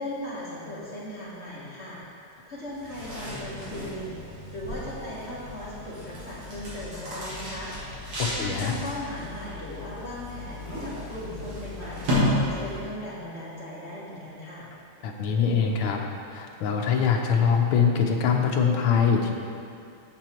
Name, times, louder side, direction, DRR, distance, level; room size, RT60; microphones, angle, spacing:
voice 1, 0.0-2.0 2.5-4.2 4.5-7.7 8.3-14.7, left 1 dB, 35° left, -7 dB, 1.6 m, -38 dB
sound 1, 2.7-13.0, left 1 dB, 85° right, 3.1 m, -33 dB
voice 2, 8.2-8.8 15.0-16.0 16.3-19.3, left 6 dB, 75° left, 2 dB, 1.6 m, -23 dB
8.0 x 7.0 x 4.4 m, 2.5 s
omnidirectional pair, 2.4 m